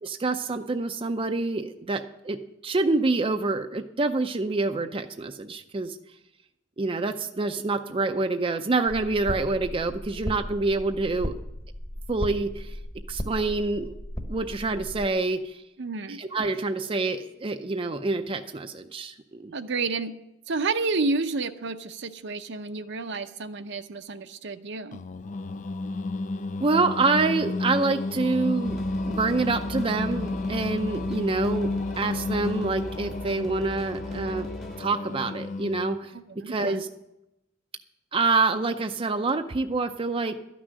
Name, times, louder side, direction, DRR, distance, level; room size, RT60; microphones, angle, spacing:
voice 1, 0.0-2.4 2.6-6.0 6.8-11.3 12.1-12.7 13.1-13.9 14.3-15.6 16.1-19.5 26.6-28.8 29.1-34.5 34.8-36.1 36.5-36.9 38.1-40.4, right 3 dB, 30° right, 7 dB, 0.5 m, -27 dB
sound 1, 8.9-15.1, equal, 20° left, 1.1 m, -36 dB
voice 2, 15.8-16.2 19.5-20.1 20.5-25.0 36.1-36.8, right 3 dB, 60° right, 9 dB, 0.7 m, -30 dB
Singing, 24.9-36.1, left 2 dB, 40° left, 0.4 m, -31 dB
sound 2, 28.6-34.8, right 1 dB, ahead, 0.9 m, -41 dB
12.5 x 6.2 x 9.5 m, 0.89 s
head